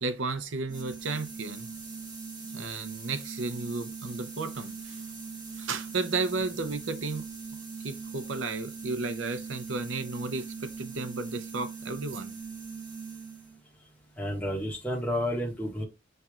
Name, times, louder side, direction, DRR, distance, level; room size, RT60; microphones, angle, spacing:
voice 1, 0.0-1.7 2.5-5.0 5.5-7.3 7.8-12.3, right 3 dB, 90° right, 0.7 m, -33 dB
sound 1, 0.7-13.6, right 5 dB, 20° right, 1.4 m, -41 dB
voice 2, 14.2-15.8, equal, 10° left, 1.6 m, -31 dB
5.7 x 3.3 x 2.4 m
head